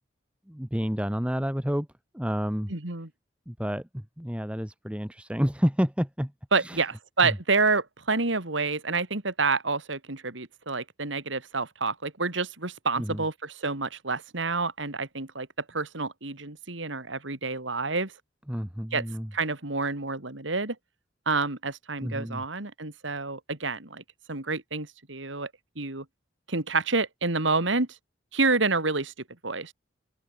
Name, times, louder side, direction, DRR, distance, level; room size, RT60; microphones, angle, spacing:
voice 1, 0.5-1.9 2.1-2.7 3.5-3.9 4.2-6.3 6.6-6.8 7.2-7.4 13.0-13.2 18.5-19.3 22.0-22.4, equal, 5° right, 1.2 m, -29 dB
voice 2, 2.7-3.1 6.5-18.1 18.9-19.0 19.3-20.8 21.3-24.0 24.3-25.5 25.8-26.0 26.5-27.9 28.3-29.1 29.4-29.7, right 3 dB, 80° right, 2.8 m, -28 dB
open air
head